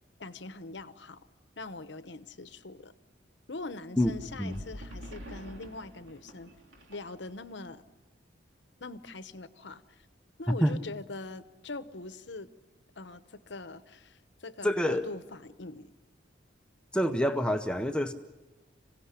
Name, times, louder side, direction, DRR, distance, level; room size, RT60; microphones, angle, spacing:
voice 1, 0.2-1.2 1.6-2.9 3.5-6.5 6.9-7.8 8.8-10.1 10.4-12.5 13.0-15.9, left 3 dB, 65° left, 13 dB, 1.0 m, -42 dB
sound 1, 4.0-7.5, equal, 85° right, 3.4 m, -46 dB
voice 2, 14.6-15.0 16.9-18.1, equal, 5° left, 7 dB, 0.7 m, -27 dB
26.5 x 16.5 x 9.9 m, 1.3 s
head